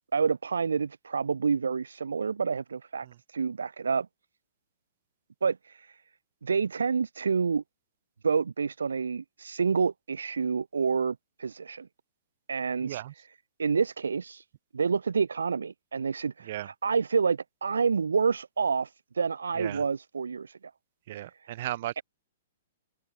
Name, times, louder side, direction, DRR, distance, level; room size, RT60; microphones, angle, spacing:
voice 1, 0.1-4.1 5.4-6.0 6.4-7.6 8.2-11.9 12.5-13.0 13.6-14.4 14.7-20.6 21.2-21.3, right 5 dB, 75° right, 0.4 m, -28 dB
voice 2, 12.8-13.1 16.4-16.7 19.6-19.8 21.1-22.0, right 14 dB, 50° right, 0.8 m, -36 dB
open air
figure-of-eight pair, 115°, 0 cm